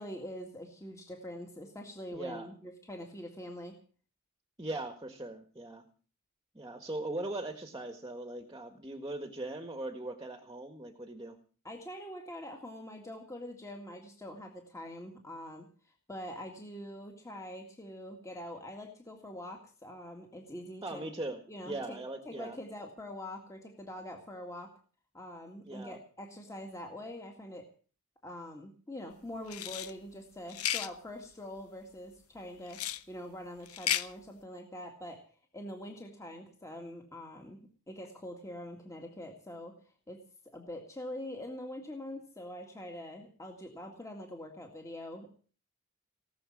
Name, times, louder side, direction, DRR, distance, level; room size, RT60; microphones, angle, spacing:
voice 1, 0.0-3.8 11.6-21.1 21.5-22.0 22.3-24.7 25.1-27.7 28.2-32.8 33.1-35.2 35.5-37.6 37.9-39.7 40.1-40.2 40.5-45.3, left 1 dB, 15° left, 3 dB, 2.0 m, -44 dB
voice 2, 2.1-2.5 4.6-5.8 6.5-11.4 20.8-22.6 25.6-26.0, right 2 dB, 15° right, 7 dB, 1.5 m, -40 dB
sound 1, 29.5-29.9 30.5-30.9 32.7-33.0 33.7-34.1, left 11 dB, 75° left, 1.0 m, -33 dB
19.0 x 7.1 x 9.8 m, 0.41 s
head